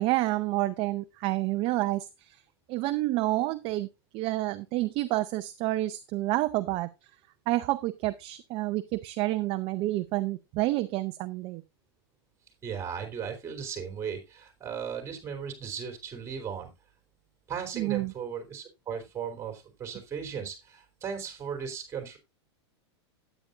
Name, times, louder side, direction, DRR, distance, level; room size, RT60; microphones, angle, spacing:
voice 1, 0.0-2.4 2.7-3.9 4.1-6.9 7.5-11.6 17.8-18.1, right 18 dB, 40° right, 10 dB, 0.6 m, -29 dB
voice 2, 12.6-16.7 17.5-22.2, right 7 dB, 20° right, 4 dB, 3.5 m, -36 dB
12.5 x 9.2 x 2.5 m, 0.23 s
hypercardioid pair, 130°, 14 cm